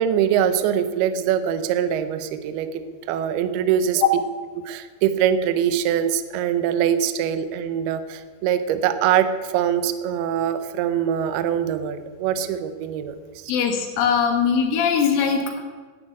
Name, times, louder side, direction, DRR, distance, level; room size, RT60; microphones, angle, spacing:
voice 1, 0.0-2.7 3.1-4.0 4.7-13.5, right 9 dB, 80° right, 11 dB, 2.3 m, -23 dB
voice 2, 13.5-15.6, left 7 dB, 85° left, 0 dB, 4.3 m, -20 dB
11.0 x 10.5 x 8.7 m, 1.5 s
omnidirectional pair, 5.5 m